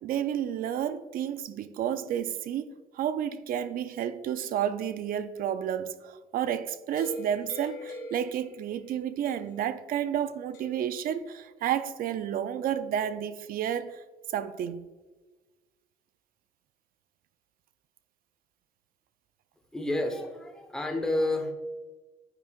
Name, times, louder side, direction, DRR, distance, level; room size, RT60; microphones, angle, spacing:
voice 1, 0.0-14.0 14.3-14.9, right 9 dB, 60° right, 0.5 m, -31 dB
sound 1, 6.9-9.0 9.2-9.7 10.5-11.0, equal, 85° left, 1.6 m, -42 dB
voice 2, 19.7-21.5, left 1 dB, 5° left, 1.0 m, -29 dB
9.7 x 5.1 x 2.4 m
cardioid pair, 110°, 17 cm